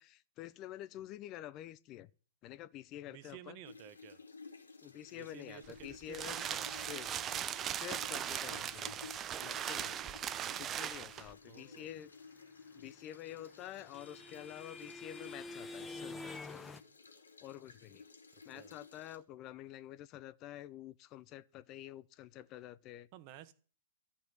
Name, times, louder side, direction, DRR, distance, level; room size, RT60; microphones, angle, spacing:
voice 1, 0.0-2.1 2.4-3.6 4.8-7.1 7.7-10.1 10.6-12.1 12.7-16.8 17.4-18.1 18.4-23.1, left 13 dB, 30° left, 0.6 m, -49 dB
voice 2, 3.1-4.2 5.1-6.9 10.3-10.9 11.4-11.9 18.3-18.7 23.1-23.5, right 12 dB, 40° right, 1.3 m, -54 dB
sound 1, 3.6-19.2, left 4 dB, 85° left, 2.8 m, -55 dB
sound 2, 5.6-11.3, right 10 dB, 25° right, 0.6 m, -39 dB
sound 3, 12.9-16.8, left 3 dB, 10° left, 1.0 m, -47 dB
13.0 x 5.7 x 9.5 m
hypercardioid pair, 120°, 0 cm